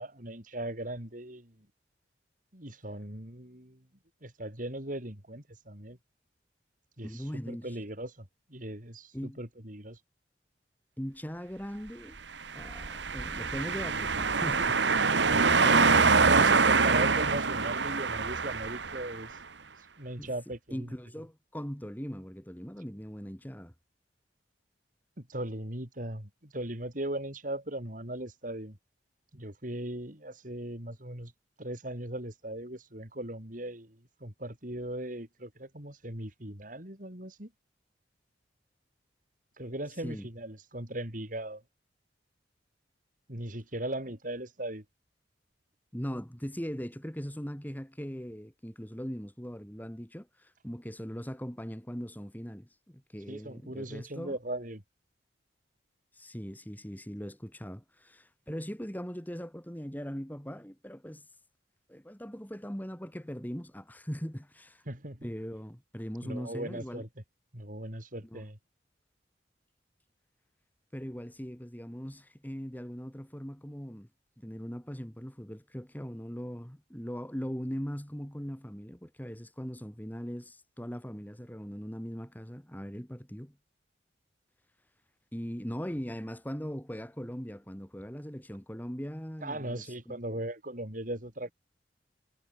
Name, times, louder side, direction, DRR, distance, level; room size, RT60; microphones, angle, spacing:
voice 1, 0.0-1.5 2.5-3.8 4.2-6.0 7.0-10.0 16.2-19.4 20.0-20.9 25.2-28.8 29.3-31.3 31.6-37.5 39.6-41.6 43.3-44.8 53.3-54.8 64.9-65.3 66.2-67.1 67.5-68.6 89.4-91.5, right 1 dB, 45° right, 5.0 m, -38 dB
voice 2, 7.0-7.8 9.1-9.4 11.0-12.2 12.5-16.6 20.2-20.3 20.7-23.7 40.0-40.3 45.9-54.4 56.1-61.3 61.9-64.8 65.2-67.0 68.2-68.4 70.9-74.1 74.4-83.6 85.3-90.4, equal, 10° left, 3.1 m, -40 dB
sound 1, 12.5-19.2, right 4 dB, 80° right, 1.8 m, -25 dB
head